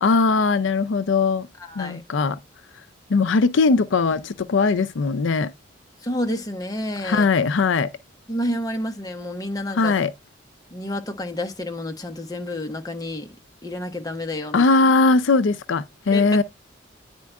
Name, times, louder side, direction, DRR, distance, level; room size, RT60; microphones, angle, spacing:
voice 1, 0.0-1.5 1.8-2.4 3.1-5.5 7.0-7.9 9.7-10.1 14.5-16.4, left 4 dB, 80° left, 0.5 m, -20 dB
voice 2, 1.6-2.0 6.0-7.3 8.3-9.9 10.7-13.4 13.6-14.7 16.1-16.3, left 1 dB, 20° left, 1.0 m, -29 dB
9.4 x 4.4 x 2.3 m
head